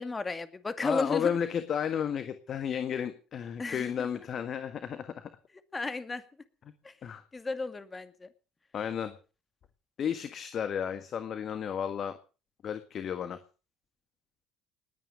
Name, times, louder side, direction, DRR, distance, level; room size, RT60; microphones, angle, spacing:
voice 1, 0.0-1.4 3.6-4.1 5.7-6.2 6.8-6.9 7.3-8.3, left 3 dB, 25° left, 11 dB, 2.3 m, -34 dB
voice 2, 0.8-5.3 7.0-7.2 8.7-9.1 10.0-12.2 12.6-13.4, left 8 dB, 45° left, 11 dB, 1.5 m, -33 dB
20.0 x 9.3 x 6.6 m, 0.37 s
hypercardioid pair, 60°, 0 cm